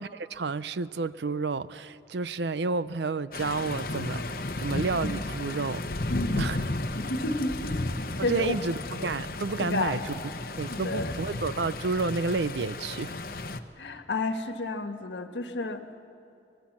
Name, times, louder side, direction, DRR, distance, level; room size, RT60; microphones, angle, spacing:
voice 1, 0.0-5.8 6.4-6.6 8.2-10.1 10.6-13.1, right 4 dB, 75° right, 16 dB, 0.6 m, -30 dB
sound 1, 3.3-13.6, left 2 dB, 55° left, 0.9 m, -33 dB
voice 2, 6.1-6.5 6.9-7.8 8.2-8.6 9.6-10.2 10.7-11.2 13.8-15.8, left 2 dB, 80° left, 8 dB, 1.4 m, -31 dB
25.0 x 19.5 x 7.4 m, 2.7 s
head